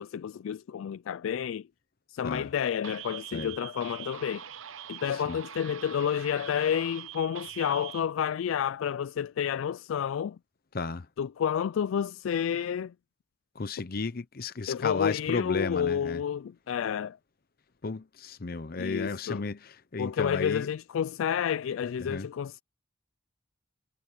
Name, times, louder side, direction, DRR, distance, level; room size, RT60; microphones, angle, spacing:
voice 1, 0.0-1.7 2.1-4.4 4.9-10.4 11.2-12.9 14.7-17.2 18.8-19.4 20.0-22.6, left 8 dB, 80° left, 0.3 m, -30 dB
sound 1, 2.8-8.0, right 10 dB, 85° right, 0.8 m, -43 dB
voice 2, 10.7-11.1 13.6-16.2 17.8-20.7 22.0-22.3, left 4 dB, 50° left, 0.7 m, -33 dB
head